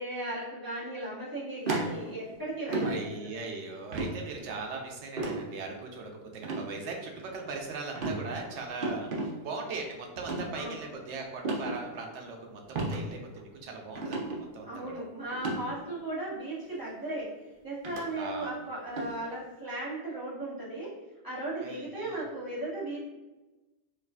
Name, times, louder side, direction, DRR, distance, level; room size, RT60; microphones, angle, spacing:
voice 1, 0.0-3.1 10.5-10.7 14.7-17.3 17.6-20.9 21.2-23.0, right 1 dB, 20° right, -9 dB, 1.1 m, -36 dB
sound 1, 1.7-2.3 2.7-3.0 3.9-4.1 5.2-5.4 6.4-6.6 7.2-7.6 8.0-8.2 8.8-9.3 10.2-10.4 11.4-11.7 12.8-13.0 13.4-13.5 14.0-14.4 15.3-15.6 16.6-16.7 17.8-18.0 19.0-19.1, right 3 dB, 55° right, 0.8 m, -32 dB
voice 2, 2.8-14.9 18.2-18.6 21.6-22.2, right 3 dB, 85° right, 2 dB, 0.9 m, -39 dB
4.7 x 2.4 x 2.3 m, 1.1 s
omnidirectional pair, 1.2 m